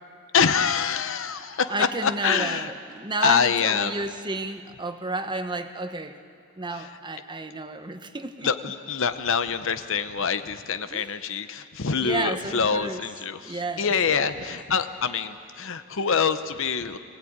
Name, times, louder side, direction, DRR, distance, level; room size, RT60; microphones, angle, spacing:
voice 1, 0.3-2.7 3.2-4.0 6.8-6.9 8.4-17.0, left 6 dB, 60° left, 11 dB, 0.8 m, -25 dB
voice 2, 1.6-6.2 6.6-8.7 10.9-11.1 12.0-13.0 13.4-14.6, right 2 dB, 20° right, 8 dB, 0.9 m, -32 dB
23.5 x 17.0 x 8.8 m, 2.3 s
head